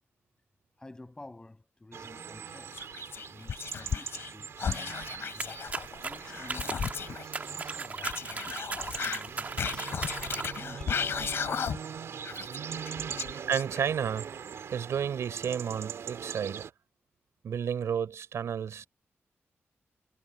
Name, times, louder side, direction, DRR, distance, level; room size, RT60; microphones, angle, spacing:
voice 1, 0.8-2.8 3.3-5.0 5.3-5.7 6.0-11.2 12.6-13.3, left 2 dB, 15° left, 7.3 m, -51 dB
sound 1, 1.9-16.7, right 7 dB, 75° right, 2.3 m, -41 dB
Whispering, 2.7-4.3 4.6-7.2 8.0-12.0 12.2-14.1, left 7 dB, 55° left, 0.5 m, -35 dB
sound 2, 5.4-10.7, right 4 dB, 35° right, 1.7 m, -38 dB
voice 2, 13.5-14.3 14.7-16.7 17.4-18.9, right 8 dB, 90° right, 5.0 m, -31 dB
wide cardioid pair, 160°, 5 cm